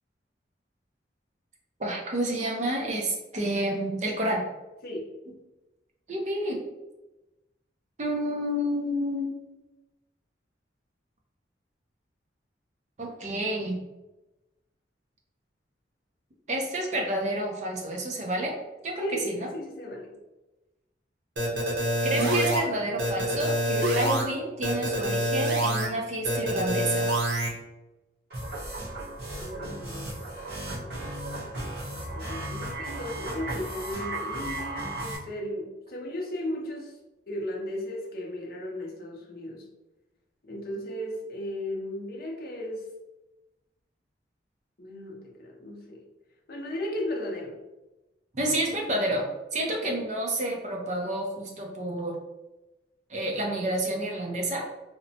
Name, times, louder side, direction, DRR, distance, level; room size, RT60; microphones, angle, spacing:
voice 1, 1.8-4.4 6.1-6.6 8.0-9.3 13.0-13.8 16.5-18.5 18.8-19.5 22.0-27.1 48.3-52.1 53.1-54.7, right 1 dB, 40° right, 0 dB, 0.5 m, -29 dB
voice 2, 19.0-20.1 29.4-30.4 32.1-37.0 37.3-39.6 40.4-42.9 44.8-46.0 46.5-47.6, left 1 dB, 55° left, 0 dB, 0.5 m, -35 dB
sound 1, 21.4-22.6 23.0-24.2 24.6-25.9 26.2-27.5, right 1 dB, 85° right, 0.7 m, -26 dB
sound 2, 28.3-35.2, right 1 dB, 60° right, 0.9 m, -35 dB
2.9 x 2.1 x 2.7 m, 1.0 s
head